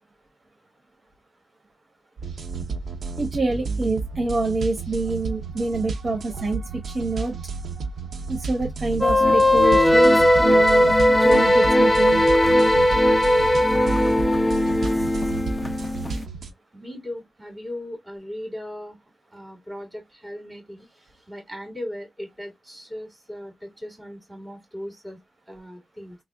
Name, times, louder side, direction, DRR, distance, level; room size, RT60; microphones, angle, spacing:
sound 1, 2.2-16.5, right 4 dB, 65° right, 0.7 m, -32 dB
voice 1, 3.2-7.4 8.3-10.1 10.4-12.3, right 3 dB, 40° right, 1.2 m, -26 dB
sound 2, 9.0-16.2, left 1 dB, 15° left, 0.4 m, -18 dB
voice 2, 16.7-19.0 19.3-20.9 21.3-25.2 25.5-26.2, left 1 dB, 15° right, 2.3 m, -37 dB
3.4 x 2.0 x 3.6 m
cardioid pair, 80°, 0 cm